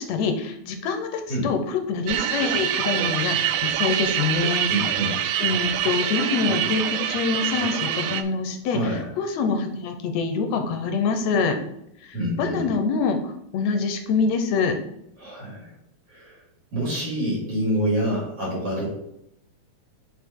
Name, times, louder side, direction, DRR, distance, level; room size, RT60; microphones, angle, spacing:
voice 1, 0.0-4.7 5.4-11.6 12.0-14.8, left 5 dB, 75° left, 6 dB, 1.9 m, -25 dB
sound 1, 2.1-8.2, right 11 dB, 80° right, 1.5 m, -25 dB
voice 2, 4.7-5.1 8.7-9.1 12.1-12.7 15.2-15.7 16.1-16.4 16.7-18.9, right 1 dB, 50° right, -7 dB, 3.9 m, -26 dB
7.4 x 4.2 x 4.6 m, 0.77 s
omnidirectional pair, 3.4 m